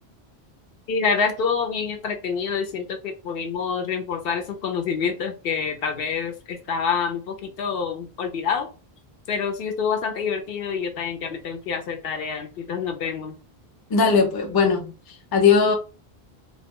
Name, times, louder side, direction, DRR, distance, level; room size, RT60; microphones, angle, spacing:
voice 1, 0.9-8.7 9.3-13.3, left 6 dB, 70° left, 0.7 m, -27 dB
voice 2, 13.9-14.9 15.3-15.7, left 5 dB, 35° left, 0.4 m, -18 dB
2.2 x 2.1 x 3.5 m
omnidirectional pair, 1.0 m